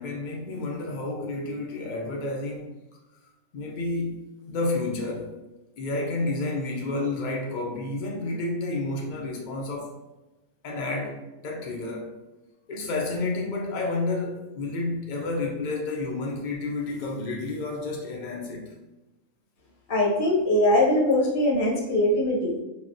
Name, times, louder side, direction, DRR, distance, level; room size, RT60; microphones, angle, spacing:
voice 1, 0.0-2.7 3.5-5.3 5.8-10.0 10.6-12.1 12.7-18.7, left 2 dB, 70° left, -1 dB, 0.4 m, -30 dB
voice 2, 19.9-22.5, left 1 dB, 50° left, -3 dB, 0.8 m, -22 dB
3.4 x 2.3 x 2.5 m, 1.1 s
omnidirectional pair, 1.3 m